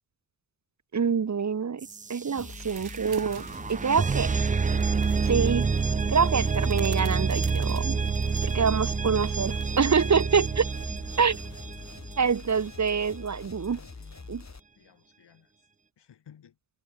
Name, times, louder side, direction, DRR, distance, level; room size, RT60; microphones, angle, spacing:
voice 1, 0.9-1.8 2.1-3.4 3.7-4.3 5.2-5.7 6.1-7.9 8.4-10.7 11.2-11.4 12.2-13.8 14.3-14.4, right 6 dB, 40° right, 1.3 m, -25 dB
sound 1, 1.8-12.6, right 5 dB, 20° right, 0.5 m, -28 dB
sound 2, 2.4-14.6, left 4 dB, 40° left, 7.4 m, -45 dB
sound 3, 2.4-3.8 4.7-5.4 6.4-8.6 9.6-9.9, right 8 dB, 60° right, 2.0 m, -49 dB
voice 2, 12.8-13.1 13.7-14.3 14.7-15.7 16.0-16.6, left 9 dB, 75° left, 6.5 m, -56 dB
supercardioid pair, 45°, 42 cm